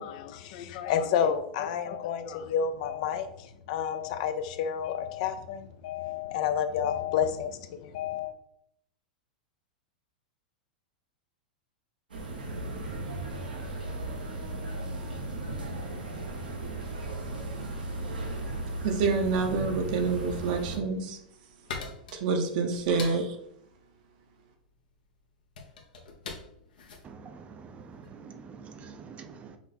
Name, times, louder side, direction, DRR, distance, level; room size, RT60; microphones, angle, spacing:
voice 1, 0.0-8.3, left 8 dB, 60° left, 9 dB, 0.5 m, -30 dB
sound 1, 12.1-20.8, right 2 dB, 90° right, 1.1 m, -36 dB
voice 2, 18.8-21.2 22.1-23.3, right 4 dB, 60° right, 5 dB, 0.9 m, -27 dB
sound 2, 21.0-28.2, left 4 dB, 75° left, 1.0 m, -44 dB
voice 3, 27.0-29.6, right 5 dB, 25° right, 9 dB, 0.5 m, -46 dB
5.8 x 2.0 x 4.2 m, 0.74 s
hypercardioid pair, 110°, 5 cm